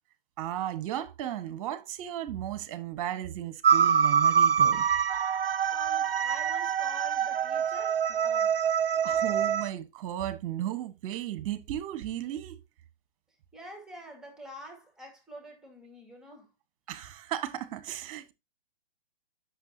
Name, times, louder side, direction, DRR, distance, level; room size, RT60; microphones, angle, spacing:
voice 1, 0.4-4.9 9.0-12.6 16.9-18.3, right 12 dB, 35° right, 1.4 m, -35 dB
sound 1, 3.6-9.7, right 7 dB, 70° right, 0.6 m, -25 dB
voice 2, 5.7-8.5 9.1-9.2 13.5-16.5, equal, ahead, 2.2 m, -46 dB
11.0 x 6.6 x 2.8 m
figure-of-eight pair, 120°, 30 cm